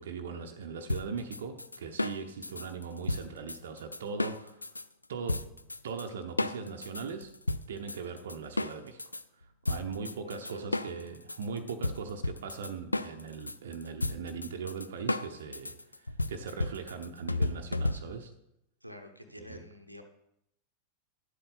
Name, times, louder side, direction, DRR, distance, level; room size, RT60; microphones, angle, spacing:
voice 1, 0.0-4.7 5.1-5.5 5.8-7.3 7.7-9.0 9.6-18.3 19.4-19.6, right 5 dB, 60° right, 7 dB, 0.8 m, -40 dB
sound 1, 0.9-4.9 5.3-6.1 6.4-9.2 9.7-18.3, left 2 dB, 80° left, 0.3 m, -34 dB
voice 2, 10.2-11.0 17.9-18.0 18.8-20.0, left 1 dB, 90° right, 6 dB, 0.9 m, -48 dB
10.5 x 7.7 x 4.1 m, 0.79 s
figure-of-eight pair, 90°, 0 cm